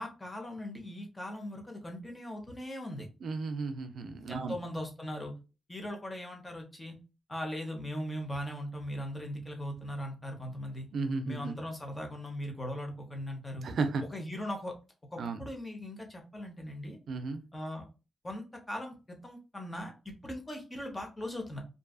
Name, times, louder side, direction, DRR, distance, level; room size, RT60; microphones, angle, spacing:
voice 1, 0.0-3.1 4.3-5.3 5.7-6.9 7.3-10.9 11.2-13.7 14.0-14.7 15.1-17.0 17.5-17.8 18.2-21.6, left 1 dB, 25° left, 2 dB, 0.8 m, -39 dB
voice 2, 3.2-4.6 10.9-11.5 13.6-14.0 15.2-15.4 17.1-17.4, right 4 dB, 70° right, 8 dB, 0.4 m, -34 dB
2.6 x 2.4 x 2.3 m, 0.31 s
cardioid pair, 80°, 0 cm